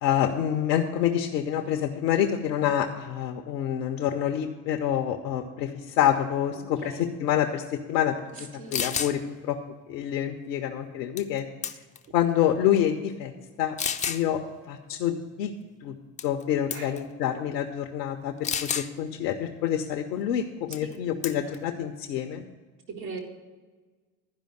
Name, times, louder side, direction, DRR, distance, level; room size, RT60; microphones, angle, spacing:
voice 1, 0.0-8.2 8.7-9.6 9.9-11.5 12.1-13.3 13.6-13.8 14.1-14.4 14.7-15.5 15.8-15.9 16.2-18.3 18.6-22.5, left 10 dB, 75° left, 4 dB, 0.7 m, -27 dB
voice 2, 8.3-8.8 16.7-16.9 20.8-20.9 21.4-21.5 22.9-23.2, right 4 dB, 75° right, -2 dB, 2.0 m, -39 dB
sound 1, 8.4-8.5 8.7-9.1 11.2-11.4 11.6-12.1 12.8-12.9 13.8-14.2 16.2-16.4 16.7-17.0 18.4-18.9 20.7-20.9 21.2-21.6, left 7 dB, 15° left, 0.4 m, -30 dB
11.5 x 5.1 x 7.7 m, 1.4 s
hypercardioid pair, 60°, 49 cm